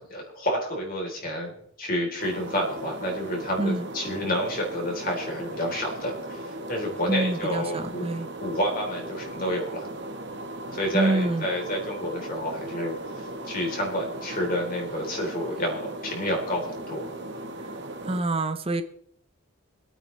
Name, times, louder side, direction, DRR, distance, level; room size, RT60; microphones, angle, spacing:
voice 1, 0.0-8.0 8.4-9.9 10.7-17.1, equal, 40° left, 0 dB, 3.6 m, -29 dB
sound 1, 2.2-18.2, right 1 dB, 55° right, 1.4 m, -37 dB
voice 2, 7.1-8.3 10.9-11.5 17.6-17.7 18.0-18.8, right 2 dB, 25° right, 9 dB, 0.7 m, -26 dB
25.5 x 8.8 x 3.3 m, 0.70 s
head